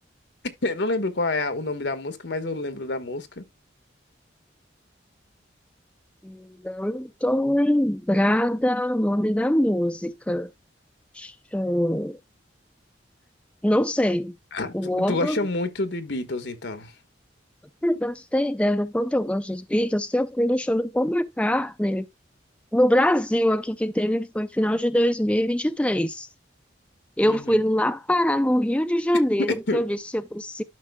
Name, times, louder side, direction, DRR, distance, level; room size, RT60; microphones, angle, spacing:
voice 1, 0.6-3.4 14.5-16.9 27.2-27.6 29.4-29.8, left 2 dB, 70° left, 1.3 m, -28 dB
voice 2, 6.2-10.5 11.1-12.2 13.6-14.4 14.7-15.4 17.8-22.1 22.7-26.3 27.2-30.6, left 1 dB, 5° left, 0.4 m, -23 dB
12.0 x 5.4 x 2.2 m
head